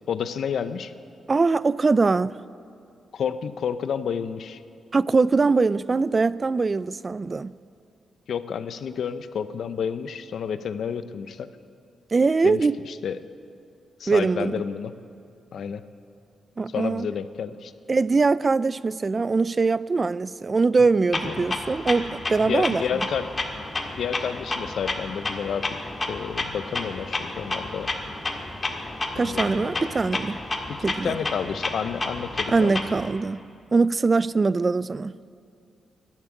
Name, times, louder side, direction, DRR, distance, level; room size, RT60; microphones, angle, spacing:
voice 1, 0.1-0.9 3.1-4.6 8.3-11.5 12.4-13.2 14.0-14.9 15.5-15.8 16.7-17.7 21.2-21.5 22.4-23.3 23.9-25.8 26.1-27.9 29.1-29.8 30.7-32.8, left 7 dB, 75° left, 0.7 m, -30 dB
voice 2, 1.3-2.4 4.9-7.5 12.1-12.8 14.1-14.6 16.6-17.1 17.9-22.8 29.2-30.4 30.8-31.2 32.5-33.5 33.7-35.1, right 4 dB, 35° right, 0.3 m, -22 dB
Clock, 21.1-33.1, left 2 dB, 35° left, 1.8 m, -31 dB
12.0 x 11.5 x 9.7 m
cardioid pair, 75°, 0 cm